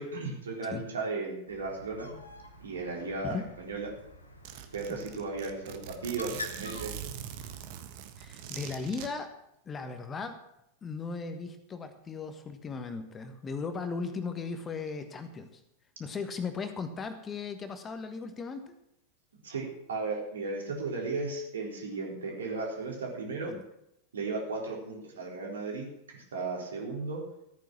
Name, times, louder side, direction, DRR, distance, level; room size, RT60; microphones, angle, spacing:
voice 1, 0.0-2.2 2.6-3.9 4.7-6.9 19.4-23.6 24.1-27.2, right 3 dB, 65° right, -1 dB, 3.8 m, -35 dB
Bird, 1.5-7.6, left 1 dB, 80° left, 1.7 m, -47 dB
Zipper (clothing), 4.0-4.1 4.4-9.1, right 10 dB, 50° right, 1.4 m, -43 dB
voice 2, 8.2-9.4 9.6-10.4 10.8-15.6 16.0-18.7 23.4-23.6, left 4 dB, 20° left, 8 dB, 1.3 m, -37 dB
14.0 x 9.3 x 6.2 m, 0.81 s
figure-of-eight pair, 90°, 0 cm